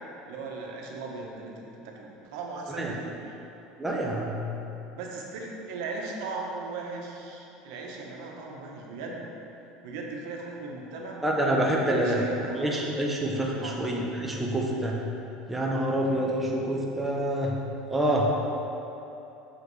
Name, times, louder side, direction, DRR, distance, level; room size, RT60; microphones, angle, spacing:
voice 1, 0.3-1.5 1.8-3.2 4.9-9.3 9.8-11.2 11.8-12.8 13.6-13.9, right 3 dB, 80° right, -1 dB, 1.1 m, -38 dB
voice 2, 3.8-4.4 11.2-12.3 12.5-15.0 15.5-17.5 17.9-18.3, right 1 dB, 5° right, -3 dB, 0.8 m, -27 dB
7.6 x 6.3 x 3.3 m, 2.9 s
cardioid pair, 140°, 2 cm